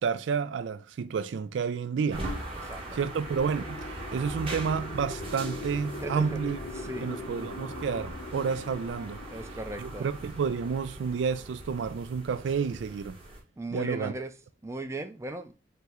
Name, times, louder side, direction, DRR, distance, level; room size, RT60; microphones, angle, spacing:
voice 1, 0.0-2.3 2.9-3.9 4.1-6.6 7.0-9.2 9.8-13.2 13.7-14.1, right 6 dB, 85° right, 0.3 m, -30 dB
sound 1, 2.1-13.4, right 1 dB, 30° right, 1.1 m, -41 dB
voice 2, 2.5-3.0 6.0-6.4 6.7-7.1 9.3-10.1 13.6-15.5, right 2 dB, 15° right, 0.4 m, -38 dB
sound 2, 2.8-11.3, left 3 dB, 50° left, 0.4 m, -42 dB
5.5 x 2.1 x 3.6 m
head